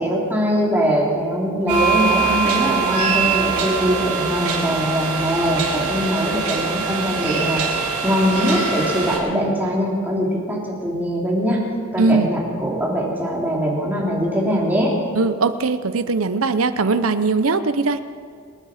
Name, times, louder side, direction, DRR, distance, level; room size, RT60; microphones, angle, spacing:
voice 1, 0.0-11.6 11.9-14.9, equal, 10° right, -4 dB, 3.0 m, -22 dB
sound 1, 1.7-9.2, right 5 dB, 90° right, 4.8 m, -23 dB
voice 2, 12.0-12.3 15.1-18.0, right 3 dB, 70° right, 11 dB, 0.8 m, -20 dB
26.0 x 10.0 x 5.0 m, 2.1 s
head